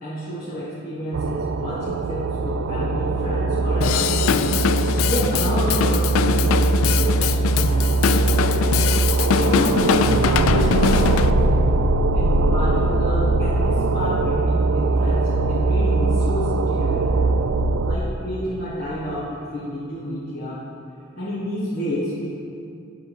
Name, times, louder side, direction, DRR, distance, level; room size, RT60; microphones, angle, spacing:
voice 1, 0.0-8.6 9.5-11.3 12.1-17.2 17.9-20.6 21.1-22.3, equal, 55° left, -10 dB, 1.5 m, -30 dB
sound 1, 1.1-18.0, right 2 dB, 70° right, 0.4 m, -21 dB
Drum kit / Drum, 3.8-11.3, left 8 dB, 90° left, 0.3 m, -22 dB
10.0 x 3.8 x 6.2 m, 2.5 s
head